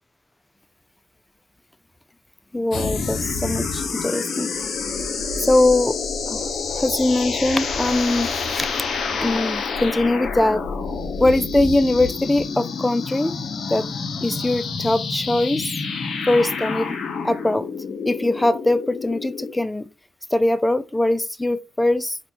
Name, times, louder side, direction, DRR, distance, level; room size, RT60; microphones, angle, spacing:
voice 1, 2.5-4.5 5.4-6.0 6.3-6.4 6.7-8.8 9.2-10.6 11.2-13.4 13.7-13.9 14.2-15.7 16.3-17.0 17.2-17.7 18.0-19.9 20.3-22.2, left 2 dB, 15° left, 0.4 m, -21 dB
sound 1, 2.7-19.5, left 4 dB, 60° left, 0.7 m, -28 dB
4.2 x 2.2 x 2.9 m
supercardioid pair, 50°, 0 cm